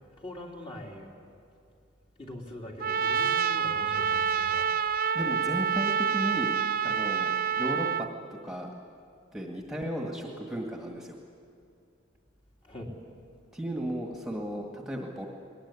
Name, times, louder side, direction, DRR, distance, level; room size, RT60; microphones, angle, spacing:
voice 1, 0.2-1.1 2.2-4.7 12.6-12.9, left 1 dB, 30° left, -1 dB, 3.2 m, -42 dB
Trumpet, 2.8-8.1, right 7 dB, 50° right, 0.7 m, -27 dB
voice 2, 5.1-6.5 6.8-8.7 9.3-11.2 13.5-15.3, right 1 dB, 5° right, 0 dB, 1.9 m, -35 dB
21.0 x 19.5 x 9.8 m, 2.4 s
head